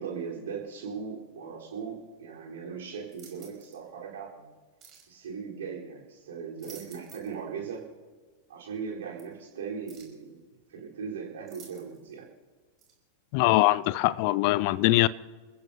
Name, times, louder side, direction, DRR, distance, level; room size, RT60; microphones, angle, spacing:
voice 1, 0.0-4.5 5.1-7.8 8.5-10.4 10.7-12.3, right 6 dB, 60° right, 4.2 m, -38 dB
sound 1, 3.1-3.8 4.8-5.1 6.4-7.4 7.7-7.8 9.2-9.3 9.9-10.2 11.5-12.1 12.8-12.9, right 7 dB, 30° right, 5.1 m, -52 dB
voice 2, 13.3-15.1, left 18 dB, 45° left, 0.5 m, -22 dB
29.5 x 15.0 x 2.8 m
figure-of-eight pair, 90°, 0 cm